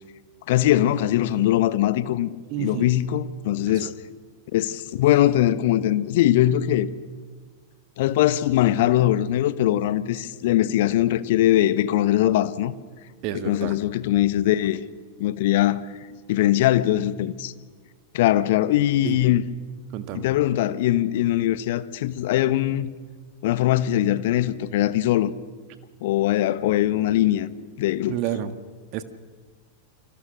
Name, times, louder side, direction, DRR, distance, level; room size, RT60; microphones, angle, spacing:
voice 1, 0.5-2.3 2.6-3.9 4.5-6.9 8.0-12.7 13.3-14.8 15.2-15.8 16.3-17.5 18.1-19.4 20.1-22.9 23.4-25.3 26.0-27.5 27.8-28.2, left 13 dB, 55° left, 1.2 m, -21 dB
voice 2, 2.5-2.9 3.7-3.9 13.2-13.7 19.0-19.2 19.9-20.3 28.1-28.5 28.9-29.0, right 11 dB, 45° right, 1.6 m, -29 dB
29.0 x 25.0 x 6.4 m
figure-of-eight pair, 90°, 0 cm